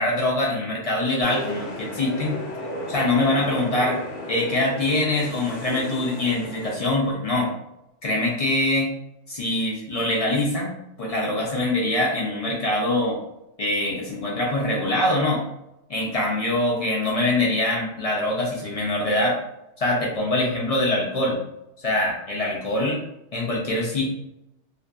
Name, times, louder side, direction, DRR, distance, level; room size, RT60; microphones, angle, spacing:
voice 1, 0.0-2.4 2.9-4.0 4.3-7.5 8.0-8.9 9.3-10.7 11.0-13.2 13.6-15.4 15.9-19.4 19.8-21.4 21.8-23.0 23.3-24.0, left 1 dB, 55° left, -3 dB, 0.4 m, -23 dB
sound 1, 1.2-6.8, left 1 dB, 90° left, 0.9 m, -34 dB
2.6 x 2.4 x 2.3 m, 0.86 s
omnidirectional pair, 1.2 m